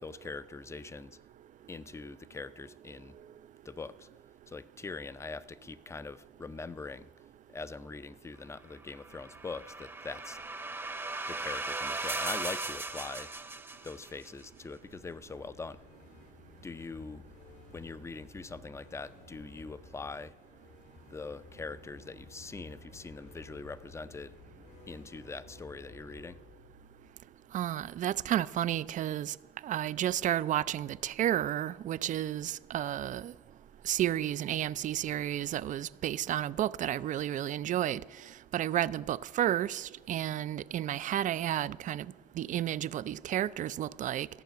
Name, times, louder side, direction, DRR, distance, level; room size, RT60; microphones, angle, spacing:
voice 1, 0.0-1.2 1.7-3.2 3.6-4.1 4.5-7.1 7.5-10.4 11.3-13.3 13.8-15.8 16.6-17.3 17.7-20.3 21.1-24.4 24.9-26.4, left 4 dB, 15° left, 0.5 m, -42 dB
sound 1, 9.0-14.3, right 3 dB, 15° right, 0.8 m, -37 dB
sound 2, 14.2-28.2, left 3 dB, 90° left, 2.8 m, -55 dB
voice 2, 27.5-29.4 29.6-33.3 33.8-38.0 38.5-42.1 42.4-44.3, right 12 dB, 50° right, 0.4 m, -31 dB
14.0 x 6.7 x 9.3 m
cardioid pair, 110°, 17 cm